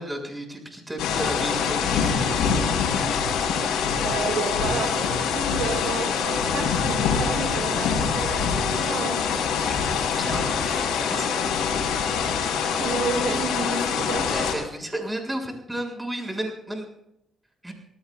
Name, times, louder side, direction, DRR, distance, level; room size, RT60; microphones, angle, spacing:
voice 1, 0.0-2.4 9.6-9.9 10.2-11.4 14.3-16.9 17.6-17.7, right 1 dB, 10° right, 1 dB, 7.2 m, -33 dB
sound 1, 1.0-14.5, left 6 dB, 90° left, 5.4 m, -24 dB
voice 2, 3.9-9.2 12.7-14.3, right 5 dB, 85° right, 3 dB, 4.4 m, -31 dB
28.0 x 19.0 x 2.6 m, 0.80 s
cardioid pair, 90°, 0 cm